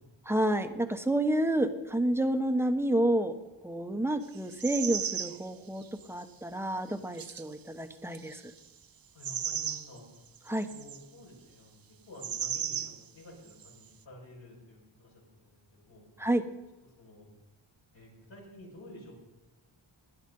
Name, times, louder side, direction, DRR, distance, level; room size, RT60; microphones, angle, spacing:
voice 1, 0.3-3.3 3.6-8.5 10.5-10.7 16.2-16.4, right 1 dB, 5° right, 7 dB, 1.2 m, -29 dB
sound 1, 4.3-5.5 5.8-6.2 7.1-7.5 8.1-8.6 9.2-10.0 10.4-11.0 12.2-13.0 13.5-13.7, right 8 dB, 50° right, 0.6 m, -35 dB
voice 2, 9.1-10.1 10.6-16.1 17.0-17.3 17.9-19.1, left 1 dB, 70° left, -5 dB, 6.0 m, -51 dB
18.5 x 10.5 x 5.5 m, 1.1 s
wide cardioid pair, 90°, 48 cm